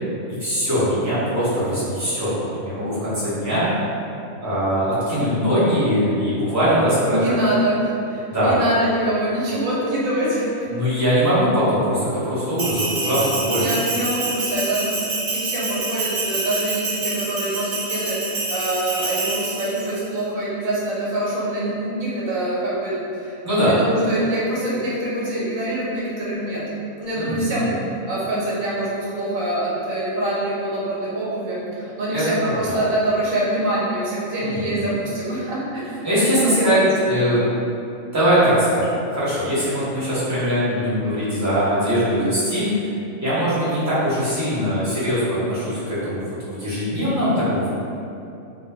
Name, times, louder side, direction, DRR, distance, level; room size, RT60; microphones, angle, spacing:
voice 1, 0.4-3.7 4.4-7.2 8.3-8.6 10.6-13.6 23.4-23.7 27.1-27.7 32.1-32.2 32.7-32.8 34.4-34.8 36.0-37.4 38.1-42.7 43.2-47.7, equal, 15° right, -12 dB, 0.9 m, -21 dB
voice 2, 7.1-10.7 13.5-26.6 27.0-35.8 36.1-36.9, right 1 dB, 85° right, -6 dB, 1.1 m, -25 dB
Bell, 12.6-20.0, right 3 dB, 60° right, 0.8 m, -27 dB
2.5 x 2.2 x 3.4 m, 2.7 s
omnidirectional pair, 1.4 m